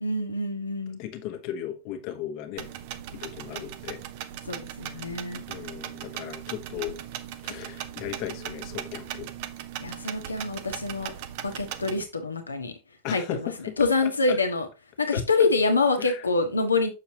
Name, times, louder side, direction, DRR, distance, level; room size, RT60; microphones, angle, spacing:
voice 1, 0.0-1.0 4.5-5.4 9.8-11.1 11.4-12.7 13.1-13.5 13.8-14.7 15.0-16.9, left 3 dB, 80° left, 1.3 m, -26 dB
voice 2, 1.0-2.7 3.1-4.0 5.5-7.0 7.4-9.3 10.0-10.2 13.0-13.9 14.3-14.4 15.1-15.2 16.0-16.2, left 11 dB, 45° left, 1.3 m, -36 dB
sound 1, 2.6-12.0, right 11 dB, 50° right, 0.7 m, -38 dB
7.0 x 6.4 x 2.9 m
figure-of-eight pair, 90°, 0 cm